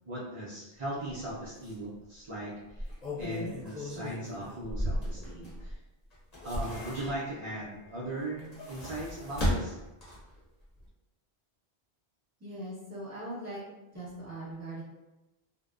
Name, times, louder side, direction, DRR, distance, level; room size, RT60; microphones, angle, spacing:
voice 1, 0.1-5.8 6.4-9.8, right 1 dB, 55° right, -7 dB, 0.3 m, -39 dB
sound 1, 1.1-1.2 1.6-1.7 2.7-5.7 6.1-7.5 8.3-10.4 10.8-10.9, equal, 40° left, 0.9 m, -35 dB
voice 2, 12.4-13.6 13.9-14.8, right 1 dB, 15° right, -8 dB, 0.8 m, -40 dB
2.5 x 2.1 x 2.3 m, 1.0 s
omnidirectional pair, 1.1 m